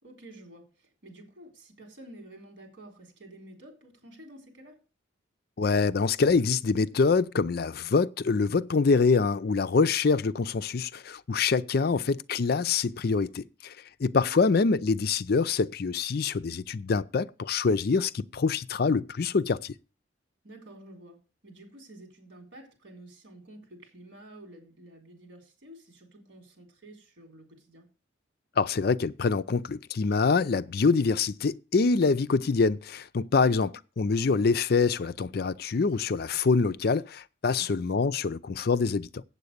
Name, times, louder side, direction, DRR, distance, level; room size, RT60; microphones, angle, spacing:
voice 1, 0.0-4.7 11.8-12.1 14.3-14.4 20.4-27.9 33.4-33.7 37.6-37.8, right 1 dB, 65° right, 4.0 m, -50 dB
voice 2, 5.6-13.7 14.0-19.7 28.6-33.7 34.0-39.2, left 4 dB, 50° left, 0.4 m, -25 dB
8.2 x 7.8 x 6.6 m
head